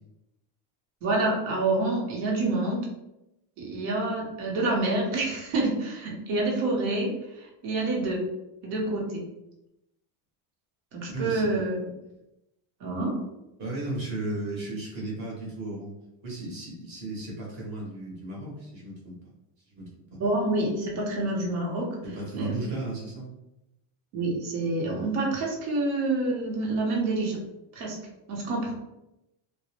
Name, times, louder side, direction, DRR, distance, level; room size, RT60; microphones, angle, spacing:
voice 1, 1.0-2.9 3.6-8.2 8.6-9.2 10.9-11.8 12.8-13.2 20.2-21.9 22.3-22.6 24.1-27.4 27.7-28.0 28.3-28.7, right 2 dB, 75° right, -2 dB, 0.8 m, -27 dB
voice 2, 11.1-11.6 13.6-15.9 16.2-19.2 19.7-20.2 22.0-23.3, right 2 dB, 40° right, -4 dB, 0.8 m, -35 dB
2.1 x 2.0 x 2.8 m, 0.91 s
cardioid pair, 175°, 45 cm